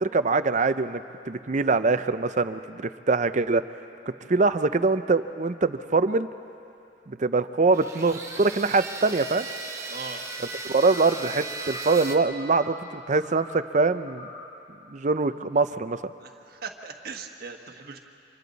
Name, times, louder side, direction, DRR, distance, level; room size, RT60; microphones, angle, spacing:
voice 1, 0.0-3.6 4.3-6.3 7.1-9.5 10.7-14.3 14.9-16.0, right 3 dB, 40° right, 12 dB, 0.6 m, -23 dB
sound 1, 7.7-12.2, right 3 dB, 15° right, 1.2 m, -36 dB
voice 2, 9.9-10.2 16.2-18.0, right 5 dB, 55° right, 4 dB, 1.2 m, -39 dB
sound 2, 10.8-11.2 11.6-12.0 12.4-12.8 13.2-13.6 14.0-14.5, left 1 dB, 80° left, 6.6 m, -44 dB
29.5 x 25.5 x 4.1 m, 2.7 s
head